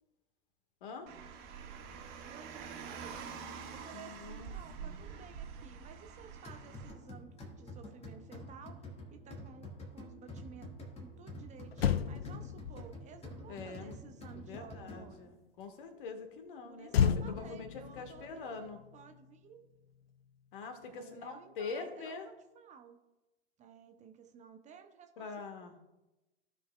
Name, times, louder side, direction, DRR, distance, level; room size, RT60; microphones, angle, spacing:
Car, 1.1-6.9, right 6 dB, 50° right, 1.7 m, -46 dB
voice 1, 2.2-3.4 3.7-10.7 11.0-15.2 16.7-18.5 18.9-19.6 20.9-23.0 23.6-25.3, right 7 dB, 25° right, 6 dB, 0.7 m, -54 dB
voice 2, 3.9-4.5 4.8-5.0 13.5-14.0 14.3-17.7 17.9-18.8 20.5-22.3 25.2-25.7, left 4 dB, 55° left, 6 dB, 1.5 m, -44 dB
sound 1, 6.4-15.3, left 1 dB, 20° left, 1.6 m, -48 dB
Motor vehicle (road), 11.3-11.4 11.7-15.3 16.9-19.5 19.8-20.0, left 8 dB, 75° left, 0.5 m, -34 dB
15.5 x 5.5 x 2.3 m, 1.0 s
figure-of-eight pair, 90°, 31 cm